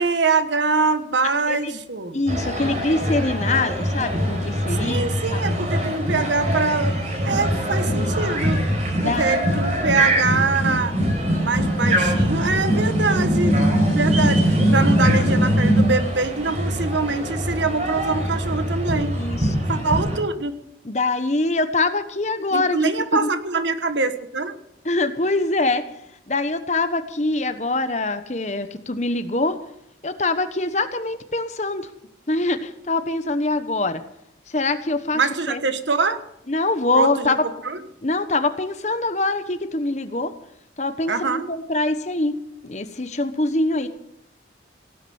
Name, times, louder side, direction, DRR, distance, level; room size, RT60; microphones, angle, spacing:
voice 1, 0.0-2.2 4.8-6.9 7.2-8.6 9.0-10.9 11.4-13.6 13.9-19.2 19.7-20.6 22.5-24.5 35.1-36.2 36.9-37.3 37.6-37.8 41.1-41.5, right 4 dB, 80° right, 10 dB, 1.4 m, -24 dB
voice 2, 1.5-1.8 2.1-5.4 8.0-8.1 9.0-9.4 13.2-13.5 15.0-15.2 19.1-19.5 20.8-23.3 24.8-25.8 26.3-29.6 30.0-31.9 32.3-34.0 34.5-35.2 35.5-35.6 36.5-37.4 38.0-40.3 40.8-42.3 42.6-43.9, left 2 dB, 40° left, 10 dB, 1.1 m, -24 dB
sound 1, 2.3-20.2, equal, 40° right, 4.7 m, -22 dB
17.5 x 9.9 x 7.1 m, 0.78 s
head